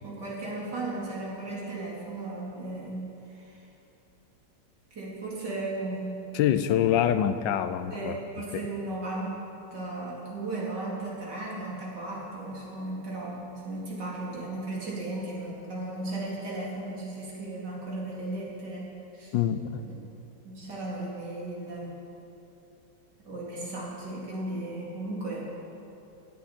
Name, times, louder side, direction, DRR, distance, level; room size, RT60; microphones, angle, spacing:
voice 1, 0.0-3.0 3.3-3.6 4.9-6.5 7.9-9.4 9.7-19.3 19.9-20.0 20.4-22.0 23.2-25.4, right 2 dB, 70° right, -5 dB, 3.3 m, -35 dB
voice 2, 6.3-8.2 19.3-19.9, left 10 dB, 90° left, 11 dB, 1.3 m, -25 dB
17.0 x 10.5 x 4.4 m, 2.9 s
omnidirectional pair, 1.9 m